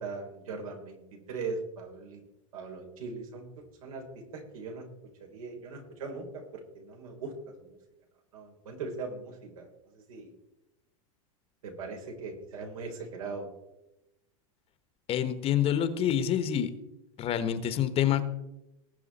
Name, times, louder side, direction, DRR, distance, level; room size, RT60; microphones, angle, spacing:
voice 1, 0.0-2.2 2.5-3.4 3.8-4.0 4.3-4.9 5.2-6.4 6.7-7.3 7.6-7.8 8.3-10.3 11.6-13.5, right 4 dB, 85° right, 1 dB, 4.1 m, -40 dB
voice 2, 15.1-16.7 17.2-18.2, left 10 dB, 35° left, 11 dB, 1.2 m, -27 dB
19.5 x 7.1 x 4.2 m, 0.93 s
supercardioid pair, 125°, 17 cm